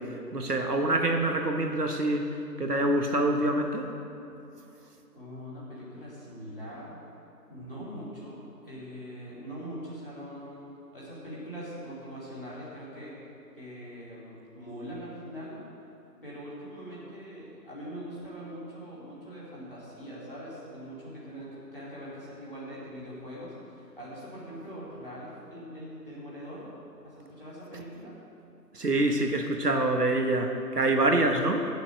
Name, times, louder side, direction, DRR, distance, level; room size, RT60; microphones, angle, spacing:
voice 1, 0.0-3.9 28.7-31.7, right 2 dB, 65° right, 3 dB, 1.2 m, -26 dB
voice 2, 5.1-7.0 7.5-13.2 13.6-15.6 16.2-26.7 27.0-28.1, equal, 35° left, -8 dB, 2.8 m, -42 dB
10.5 x 6.9 x 6.5 m, 2.7 s
figure-of-eight pair, 175°, 50 cm